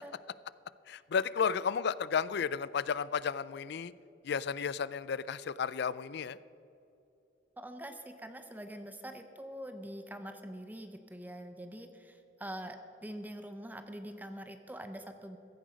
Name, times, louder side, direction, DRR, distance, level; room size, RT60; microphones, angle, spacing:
voice 1, 0.9-3.9 4.2-6.4, left 6 dB, 65° left, 18 dB, 0.4 m, -33 dB
voice 2, 7.6-15.4, right 1 dB, 10° right, 8 dB, 0.8 m, -44 dB
15.5 x 10.0 x 5.2 m, 2.8 s
head